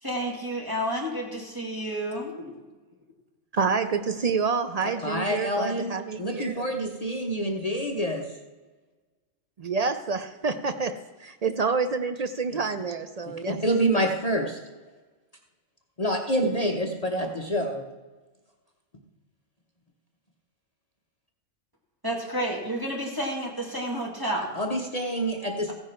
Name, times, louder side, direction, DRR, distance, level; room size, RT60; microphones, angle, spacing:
voice 1, 0.0-2.3 22.0-24.6, equal, 15° right, -2 dB, 2.0 m, -30 dB
voice 2, 3.5-6.7 9.6-13.6, right 5 dB, 60° right, 9 dB, 0.4 m, -28 dB
voice 3, 5.0-8.3 13.3-14.6 16.0-17.8 24.6-25.7, equal, 30° left, 2 dB, 0.9 m, -27 dB
15.0 x 10.0 x 4.4 m, 1.3 s
omnidirectional pair, 1.4 m